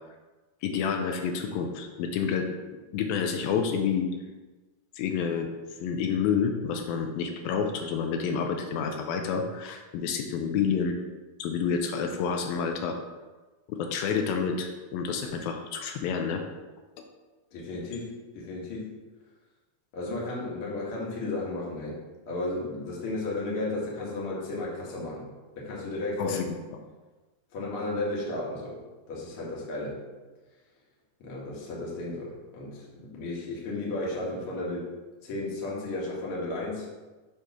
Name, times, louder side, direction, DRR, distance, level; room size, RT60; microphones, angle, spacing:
voice 1, 0.6-2.5 2.9-4.1 5.0-5.5 5.8-11.0 11.4-13.0 13.7-16.4 26.2-26.6, left 6 dB, 80° left, 4 dB, 2.2 m, -29 dB
voice 2, 17.5-18.9 19.9-22.0 22.3-25.2 25.5-26.4 27.5-28.8 29.1-30.0 31.2-34.9 35.2-36.9, left 2 dB, 55° left, -4 dB, 1.7 m, -34 dB
7.0 x 3.2 x 5.6 m, 1.2 s
omnidirectional pair, 4.5 m